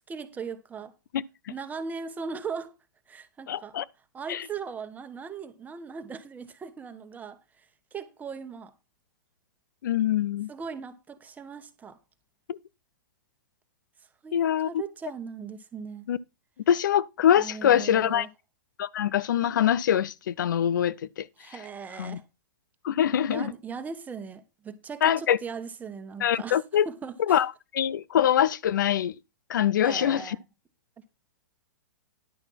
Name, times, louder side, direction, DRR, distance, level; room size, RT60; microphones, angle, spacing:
voice 1, 0.1-0.9 1.5-2.7 3.1-3.7 4.1-7.7 7.9-8.7 10.5-12.0 14.2-16.1 17.4-18.3 21.4-22.2 23.3-26.6 26.8-27.4 29.8-30.4, right 5 dB, 15° right, 1.3 m, -39 dB
voice 2, 3.5-3.8 4.3-4.5 9.8-10.5 12.5-12.6 14.3-14.7 16.1-16.2 16.7-18.3 18.8-21.3 22.0-22.2 22.8-23.5 25.0-25.4 26.2-26.9 27.3-29.1 29.5-30.4, left 10 dB, 70° left, 0.5 m, -24 dB
11.0 x 5.6 x 5.9 m
hypercardioid pair, 130°, 10 cm